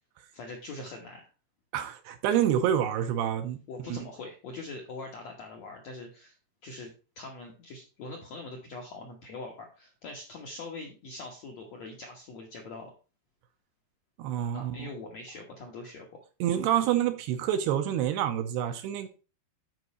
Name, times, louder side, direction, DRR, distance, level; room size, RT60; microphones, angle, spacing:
voice 1, 0.3-1.3 3.7-6.4 6.6-6.9 7.1-12.9 14.5-16.2, left 3 dB, 65° left, 1.7 m, -42 dB
voice 2, 1.7-3.6 3.9-4.0 14.2-14.9 16.4-19.1, right 10 dB, 80° right, 2.6 m, -27 dB
11.0 x 4.7 x 4.1 m
omnidirectional pair, 5.1 m